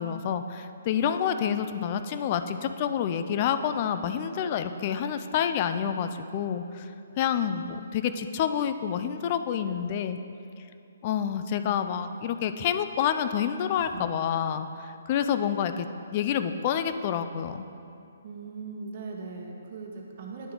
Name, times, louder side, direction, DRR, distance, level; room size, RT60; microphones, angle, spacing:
voice 1, 0.0-6.9 7.2-10.2 11.0-17.6, left 8 dB, 35° left, 10 dB, 0.4 m, -28 dB
voice 2, 11.5-11.8 13.7-14.0 18.2-20.5, right 4 dB, 50° right, 0 dB, 1.1 m, -40 dB
10.0 x 3.7 x 4.7 m, 2.6 s
hypercardioid pair, 150°, 0 cm